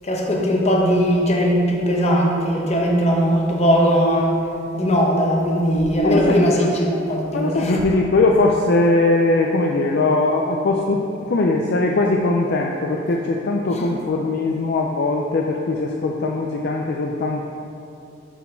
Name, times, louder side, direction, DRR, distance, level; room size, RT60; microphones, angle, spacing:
voice 1, 0.0-4.4 4.7-7.9 13.8-13.9, equal, 35° left, -1 dB, 0.9 m, -19 dB
voice 2, 6.0-6.5 7.3-17.5, left 2 dB, 55° left, 1 dB, 0.4 m, -20 dB
7.0 x 4.3 x 4.4 m, 2.6 s
head